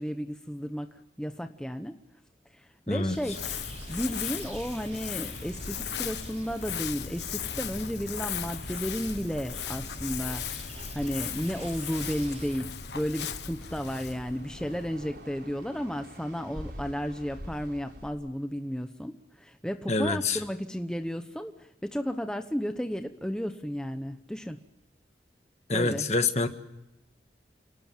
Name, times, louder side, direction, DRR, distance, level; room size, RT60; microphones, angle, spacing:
voice 1, 0.0-2.0 2.5-3.4 3.9-10.4 10.9-24.6 25.7-26.1, equal, 5° left, 6 dB, 0.9 m, -33 dB
sound 1, 3.1-12.6, right 1 dB, 35° right, 5.8 m, -45 dB
Crumpling crinkling, 3.2-15.6, left 8 dB, 75° left, 1.2 m, -37 dB
sound 2, 11.0-18.1, equal, 65° right, 4.6 m, -47 dB
voice 2, 19.9-20.4 25.7-26.5, left 3 dB, 40° left, 8 dB, 1.6 m, -26 dB
29.0 x 19.5 x 7.4 m, 0.89 s
head